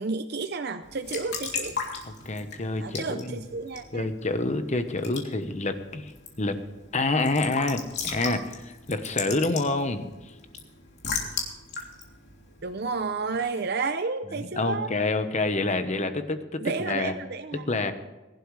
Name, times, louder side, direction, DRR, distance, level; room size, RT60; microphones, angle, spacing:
voice 1, 0.0-1.8 2.8-4.1 12.6-14.9 15.7-15.8 16.6-17.7, right 4 dB, 55° right, 8 dB, 0.6 m, -31 dB
Raindrop / Drip / Trickle dribble, 0.8-13.3, left 5 dB, 55° left, 3.1 m, -37 dB
voice 2, 2.0-3.4 3.9-6.1 6.4-6.6 6.9-10.1 14.3-17.1 17.7-17.9, left 2 dB, 35° left, 9 dB, 1.1 m, -27 dB
21.0 x 12.0 x 3.3 m, 1.1 s
head